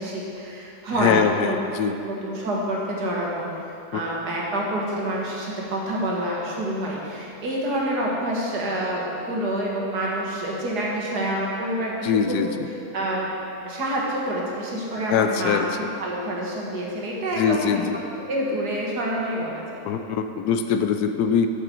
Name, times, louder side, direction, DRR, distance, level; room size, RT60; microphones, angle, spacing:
voice 1, 0.0-1.6 2.0-3.5 3.9-12.4 12.7-13.3 13.6-15.7 16.0-17.9 18.2-19.8, right 1 dB, 75° right, -3 dB, 2.1 m, -27 dB
voice 2, 1.0-1.9 3.9-4.0 12.0-12.7 15.1-15.7 17.4-18.0 19.8-21.5, left 7 dB, 75° left, 8 dB, 1.1 m, -22 dB
12.5 x 6.8 x 4.5 m, 2.7 s
omnidirectional pair, 1.7 m